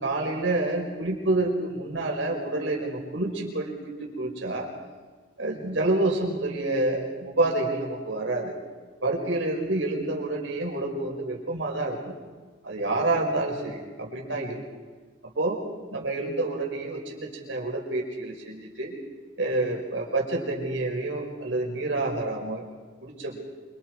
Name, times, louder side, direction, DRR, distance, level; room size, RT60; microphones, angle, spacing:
voice 1, 0.0-4.7 5.4-8.5 9.0-12.1 12.6-14.6 15.3-15.6 15.9-18.9 19.4-22.6 23.0-23.4, right 2 dB, 85° right, 0 dB, 5.3 m, -28 dB
27.0 x 25.5 x 4.8 m, 1.4 s
head